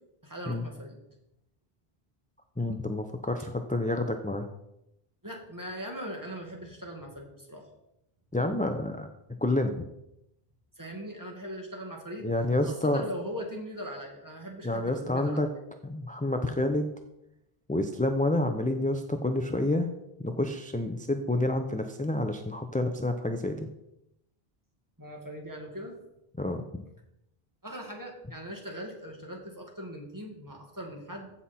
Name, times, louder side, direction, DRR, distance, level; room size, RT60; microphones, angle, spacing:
voice 1, 0.2-1.0 5.2-7.7 10.8-12.3 12.6-15.6 25.0-26.0 27.6-31.3, equal, 20° right, 0 dB, 2.0 m, -40 dB
voice 2, 2.6-4.5 8.3-9.1 9.4-9.9 12.2-13.0 14.6-15.5 15.8-16.9 17.7-19.9 20.2-23.7 26.4-26.8, left 1 dB, 10° left, 5 dB, 0.4 m, -28 dB
15.0 x 5.8 x 4.2 m, 0.85 s
omnidirectional pair, 1.0 m